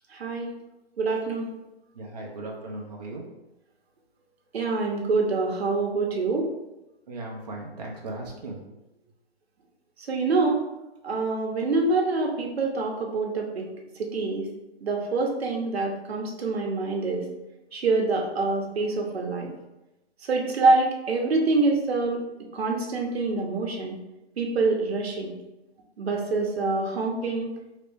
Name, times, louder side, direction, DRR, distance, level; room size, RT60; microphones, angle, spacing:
voice 1, 0.1-0.5 1.0-1.5 4.5-6.5 10.1-10.6 11.0-13.7 14.0-14.5 14.8-17.3 17.7-19.5 20.3-22.2 22.5-24.0 24.4-25.3 26.0-27.5, right 3 dB, 70° right, 1 dB, 0.9 m, -25 dB
voice 2, 1.9-3.2 7.1-8.6, right 2 dB, 40° right, -2 dB, 0.6 m, -37 dB
3.1 x 2.9 x 3.3 m, 0.97 s
hypercardioid pair, 165°, 33 cm